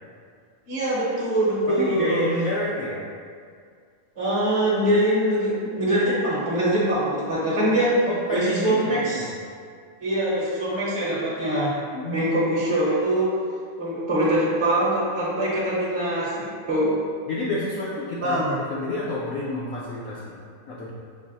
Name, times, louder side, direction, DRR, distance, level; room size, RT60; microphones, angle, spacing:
voice 1, 0.7-2.2 4.2-8.0 8.3-9.3 10.0-11.8 12.1-13.3 13.8-17.0 18.2-18.6, right 1 dB, 25° right, -8 dB, 0.9 m, -23 dB
voice 2, 1.7-3.0 8.1-9.3 11.9-12.3 17.3-18.4 18.7-20.3 20.7-20.9, left 1 dB, 65° left, -7 dB, 1.0 m, -29 dB
6.1 x 2.0 x 3.9 m, 2.1 s
omnidirectional pair, 1.6 m